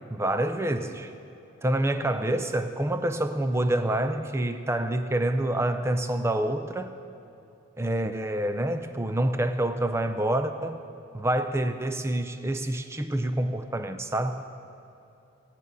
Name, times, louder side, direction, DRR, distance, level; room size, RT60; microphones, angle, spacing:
voice 1, 0.1-1.1 1.6-6.9 7.8-10.8 11.1-14.5, right 1 dB, 10° right, 8 dB, 0.5 m, -27 dB
15.5 x 10.0 x 5.4 m, 2.7 s
head